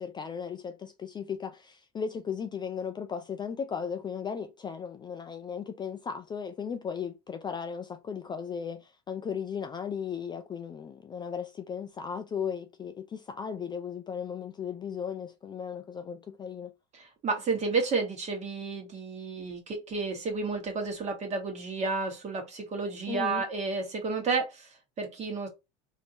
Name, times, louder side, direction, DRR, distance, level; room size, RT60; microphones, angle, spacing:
voice 1, 0.0-16.7 23.1-23.4, left 7 dB, 20° left, 0.4 m, -36 dB
voice 2, 16.9-25.5, right 4 dB, 35° right, 1.4 m, -31 dB
3.5 x 2.7 x 2.9 m
supercardioid pair, 115°, 20 cm